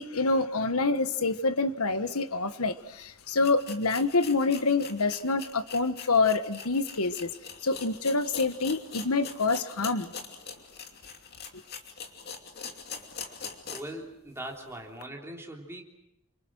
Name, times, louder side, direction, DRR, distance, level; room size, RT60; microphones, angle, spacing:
voice 1, 0.0-7.3 7.6-10.1, left 3 dB, 85° left, 1.4 m, -27 dB
sound 1, 2.9-3.0 3.4-14.0 14.4-14.5 15.0-15.1, left 6 dB, 45° left, 2.8 m, -43 dB
voice 2, 13.7-15.8, right 1 dB, 10° right, 3.6 m, -40 dB
29.0 x 25.5 x 6.3 m
head